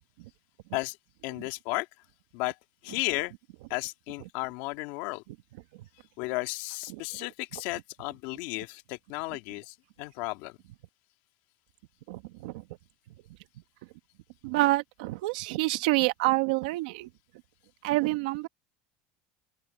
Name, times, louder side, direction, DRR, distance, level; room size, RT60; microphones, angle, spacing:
voice 1, 1.2-1.9 2.3-2.5 2.8-3.3 3.7-5.2 6.2-10.6, left 22 dB, 65° left, 2.1 m, -34 dB
voice 2, 12.1-12.6 14.4-17.1 17.8-18.5, right 20 dB, 80° right, 1.5 m, -27 dB
open air
cardioid pair, 150°, 4 cm